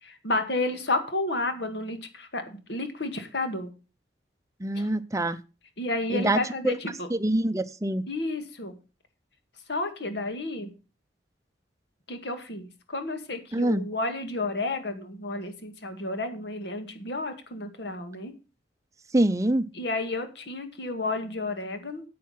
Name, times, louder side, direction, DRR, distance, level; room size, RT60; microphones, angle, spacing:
voice 1, 0.0-3.7 4.7-4.9 5.8-7.1 8.1-8.8 9.7-10.7 12.1-18.3 19.7-22.0, left 2 dB, 65° left, 8 dB, 2.0 m, -31 dB
voice 2, 4.6-5.4 6.1-6.4 6.6-6.8 7.1-8.0 13.5-13.8 19.1-19.7, right 1 dB, 15° right, 11 dB, 0.6 m, -25 dB
9.1 x 8.5 x 5.7 m, 0.31 s
head